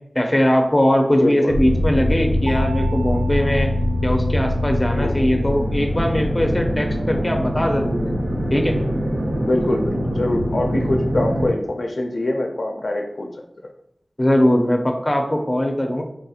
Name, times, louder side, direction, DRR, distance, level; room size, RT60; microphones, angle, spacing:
voice 1, 0.1-3.7 4.0-8.1 8.5-8.8 14.2-16.0, equal, 20° left, 3 dB, 0.5 m, -20 dB
voice 2, 1.2-1.5 4.9-5.3 9.5-13.3, left 1 dB, 75° left, 3 dB, 0.4 m, -24 dB
sound 1, 1.5-11.5, equal, 80° right, 0.4 m, -23 dB
Mallet percussion, 2.5-5.0, right 3 dB, 50° right, 0.7 m, -38 dB
4.2 x 2.7 x 2.4 m, 0.79 s
wide cardioid pair, 60°, 0 cm